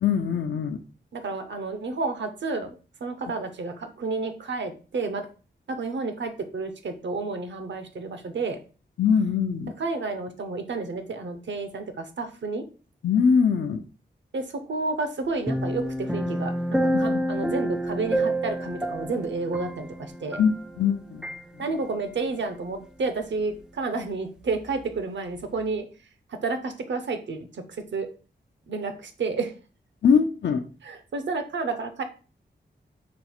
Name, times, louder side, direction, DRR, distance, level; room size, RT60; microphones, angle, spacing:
voice 1, 0.0-0.8 9.0-9.7 13.0-13.8 16.9-17.2 20.4-21.3 30.0-30.6, left 6 dB, 75° left, 7 dB, 0.5 m, -22 dB
voice 2, 1.1-5.3 5.7-8.6 9.8-12.6 14.3-20.4 21.6-25.9 26.3-27.6 27.9-28.1 28.7-29.5 30.8-32.0, right 3 dB, 70° right, 7 dB, 0.8 m, -31 dB
sound 1, 15.5-20.9 21.2-21.4, right 1 dB, 5° right, 0.3 m, -28 dB
5.3 x 2.4 x 4.2 m, 0.37 s
wide cardioid pair, 135°, 19 cm